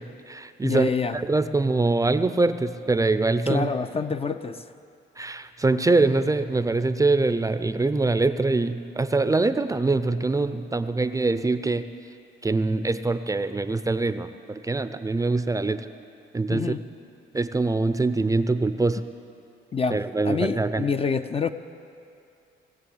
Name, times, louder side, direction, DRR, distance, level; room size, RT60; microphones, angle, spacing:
voice 1, 0.0-3.7 5.2-11.8 12.4-15.9 16.3-16.8 17.3-19.0 19.9-20.9, right 3 dB, 15° right, 11 dB, 0.5 m, -24 dB
voice 2, 0.6-1.2 3.5-4.6 16.5-16.8 19.7-20.0 20.2-21.5, left 5 dB, 30° left, 9 dB, 0.5 m, -27 dB
19.0 x 7.6 x 7.9 m, 2.6 s
cardioid pair, 90°, 20 cm